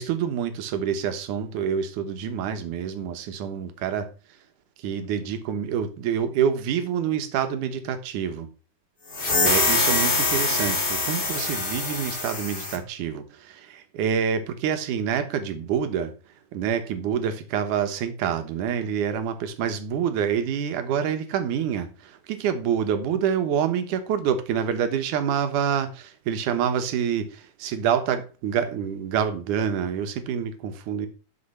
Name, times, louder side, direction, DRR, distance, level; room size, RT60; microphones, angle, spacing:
voice 1, 0.0-4.1 4.8-8.5 9.4-16.1 16.5-31.1, right 8 dB, 65° right, 2.4 m, -27 dB
sound 1, 9.1-12.8, left 3 dB, 45° left, 0.6 m, -24 dB
11.5 x 5.2 x 5.7 m
omnidirectional pair, 4.4 m